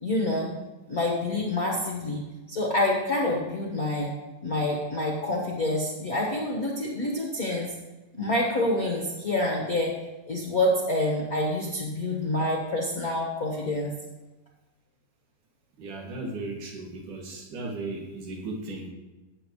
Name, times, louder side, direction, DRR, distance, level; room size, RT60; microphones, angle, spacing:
voice 1, 0.0-0.5 0.9-2.2 2.5-4.1 4.4-7.7 8.2-9.9 10.3-13.9, left 1 dB, 50° left, -2 dB, 1.1 m, -27 dB
voice 2, 15.8-18.9, right 2 dB, 75° right, 0 dB, 3.4 m, -36 dB
16.5 x 7.4 x 3.1 m, 1.1 s
omnidirectional pair, 3.7 m